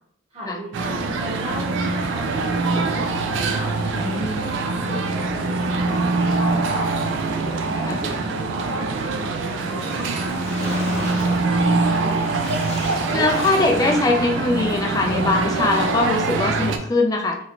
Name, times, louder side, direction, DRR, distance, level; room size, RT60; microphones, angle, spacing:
voice 1, 0.3-3.0 3.3-6.9 7.3-12.0, right 1 dB, 30° right, -9 dB, 0.8 m, -36 dB
sound 1, 0.7-16.8, right 3 dB, 65° right, 0.4 m, -24 dB
voice 2, 4.0-4.4 7.8-8.0 13.1-17.4, left 2 dB, 20° left, 2 dB, 0.3 m, -21 dB
Splash splatter, 9.5-14.3, left 1 dB, 35° left, 0.8 m, -36 dB
3.1 x 3.0 x 2.5 m, 0.71 s
head